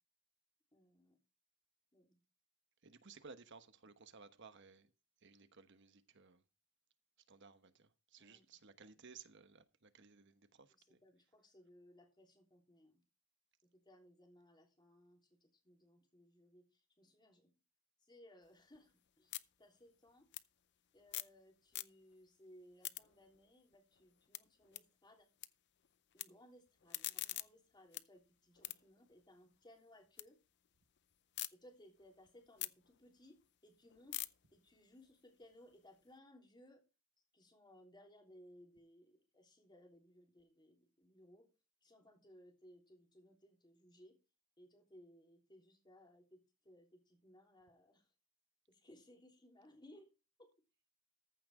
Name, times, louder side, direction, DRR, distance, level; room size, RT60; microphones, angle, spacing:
voice 1, 0.7-1.2 1.9-2.2 8.2-8.7 10.7-13.0 13.6-17.5 18.0-20.3 20.9-25.3 26.1-30.4 31.5-36.8 37.3-41.5 41.8-44.2 44.6-48.1 48.7-50.1 50.4-50.5, left 1 dB, 20° left, 3.4 m, -63 dB
voice 2, 2.8-4.9 5.2-6.4 7.3-11.0, right 5 dB, 60° right, 1.1 m, -59 dB
sound 1, 18.4-21.4 21.7-22.3 22.6-25.5 25.8-26.2 26.7-30.3 30.6-31.5 32.0-36.1, left 16 dB, 55° left, 0.6 m, -48 dB
14.5 x 6.0 x 4.9 m
head